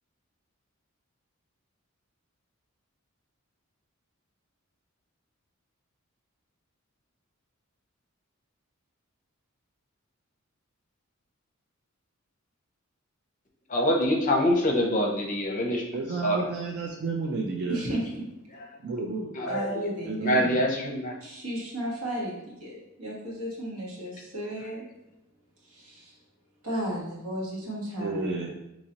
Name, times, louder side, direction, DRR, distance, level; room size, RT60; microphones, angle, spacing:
voice 1, 13.7-15.8 16.2-16.5 19.4-19.6 20.2-21.1, equal, 35° left, 0 dB, 0.6 m, -25 dB
voice 2, 15.9-17.8 18.8-19.3 20.1-20.6 28.0-28.5, right 3 dB, 50° right, -1 dB, 0.4 m, -31 dB
voice 3, 17.7-18.2 19.5-20.4 21.2-24.9 25.6-26.2 26.6-28.5, equal, 90° right, -4 dB, 1.2 m, -34 dB
4.1 x 2.9 x 2.8 m, 0.91 s
head